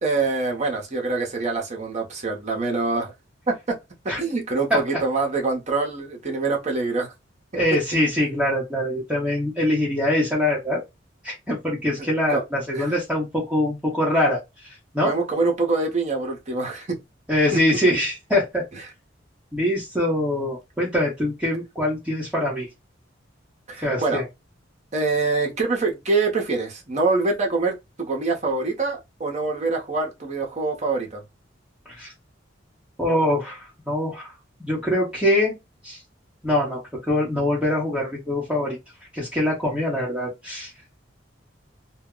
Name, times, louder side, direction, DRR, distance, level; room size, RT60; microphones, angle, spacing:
voice 1, 0.0-3.1 3.5-3.8 4.2-7.1 7.7-7.8 12.0-12.4 12.7-12.9 15.0-17.0 17.5-17.6 18.7-18.8 23.7-24.2 24.9-31.2, right 3 dB, 40° right, 0.7 m, -25 dB
voice 2, 7.5-10.8 11.2-15.1 17.3-18.6 19.5-22.7 23.8-24.2 32.0-32.1 33.0-34.3 34.6-35.5 35.8-36.0 36.4-38.8 39.1-40.7, left 1 dB, 5° right, 0.8 m, -23 dB
2.2 x 2.1 x 3.6 m
head